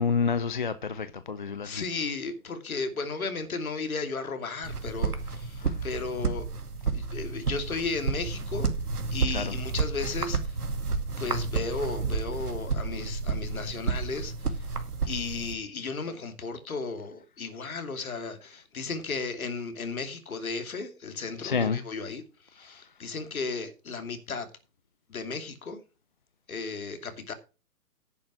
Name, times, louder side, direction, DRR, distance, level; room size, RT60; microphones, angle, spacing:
voice 1, 0.0-1.8 5.6-5.8 9.3-9.6 21.4-21.8 22.6-22.7, left 5 dB, 35° left, 0.5 m, -29 dB
voice 2, 1.6-6.5 6.9-8.7 9.1-10.6 11.2-14.3 15.1-22.2 22.5-24.5 25.1-25.8 26.5-27.3, left 4 dB, 60° left, 2.7 m, -34 dB
sound 1, 4.6-15.5, right 4 dB, 70° right, 2.2 m, -31 dB
10.5 x 7.0 x 6.1 m
figure-of-eight pair, 135°, 47 cm